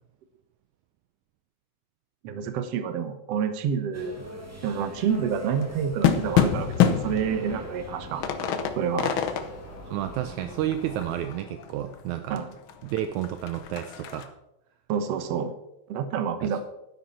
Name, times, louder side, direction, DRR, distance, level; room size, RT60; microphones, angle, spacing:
voice 1, 2.2-4.2 4.6-8.2 8.8-9.2 12.3-12.5 14.9-15.5 15.9-16.6, right 7 dB, 60° right, 9 dB, 1.9 m, -28 dB
sound 1, 3.9-11.3, equal, 5° right, 1.4 m, -43 dB
sound 2, 5.0-12.0 12.4-12.5 12.7-14.3, left 9 dB, 85° left, 1.1 m, -27 dB
voice 2, 9.8-12.4 12.8-14.3 16.4-16.6, right 12 dB, 80° right, 9 dB, 1.9 m, -31 dB
12.0 x 10.0 x 4.3 m, 0.85 s
omnidirectional pair, 3.5 m